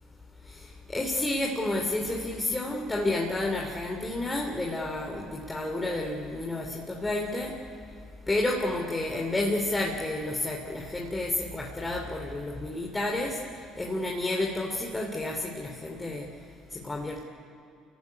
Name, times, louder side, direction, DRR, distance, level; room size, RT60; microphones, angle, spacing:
voice 1, 0.9-7.6 8.3-13.4 13.8-16.3 16.7-17.2, left 2 dB, 20° left, 0 dB, 3.1 m, -30 dB
28.5 x 16.5 x 9.9 m, 2.4 s
hypercardioid pair, 60°, 0 cm